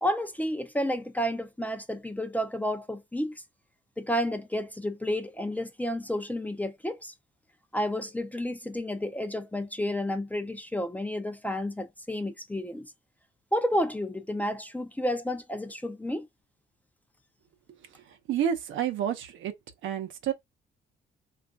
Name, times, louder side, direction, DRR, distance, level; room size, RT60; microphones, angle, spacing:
voice 1, 0.0-3.3 4.0-7.1 7.7-12.9 13.5-16.3, equal, 10° left, 0.4 m, -31 dB
voice 2, 17.9-19.5 19.8-20.3, right 9 dB, 75° right, 0.7 m, -30 dB
3.1 x 2.4 x 2.3 m
cardioid pair, 90°, 20 cm